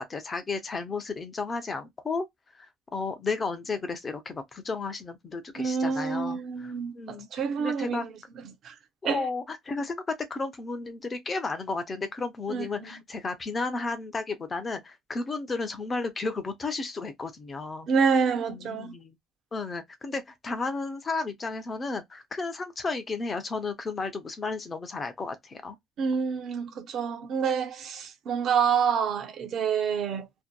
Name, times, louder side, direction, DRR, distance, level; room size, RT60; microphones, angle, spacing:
voice 1, 0.0-2.3 2.6-7.3 7.6-8.1 9.0-17.9 18.5-19.1 19.5-25.8, left 3 dB, 20° left, 0.5 m, -33 dB
voice 2, 5.5-8.1 8.4-8.7 9.0-9.3 12.5-13.0 17.9-18.9 26.0-30.3, right 6 dB, 40° right, 0.5 m, -28 dB
2.6 x 2.1 x 2.2 m
cardioid pair, 165°, 0 cm